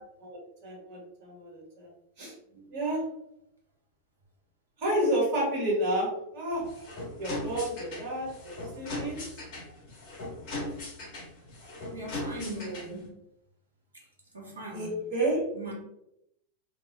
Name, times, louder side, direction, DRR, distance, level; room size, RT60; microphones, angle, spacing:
voice 1, 0.2-1.9 2.2-2.3 2.7-3.0 4.8-6.6 7.2-9.2 14.7-15.4, right 1 dB, 45° right, -4 dB, 1.2 m, -30 dB
voice 2, 2.5-2.9 8.1-8.2 8.6-8.8 10.2-10.3 11.9-13.1 13.9-14.1 14.3-15.1 15.5-15.7, right 2 dB, 75° right, -3 dB, 0.8 m, -41 dB
sound 1, 6.5-13.1, left 2 dB, 45° left, 1.0 m, -39 dB
2.3 x 2.0 x 2.6 m, 0.85 s
figure-of-eight pair, 90°, 0 cm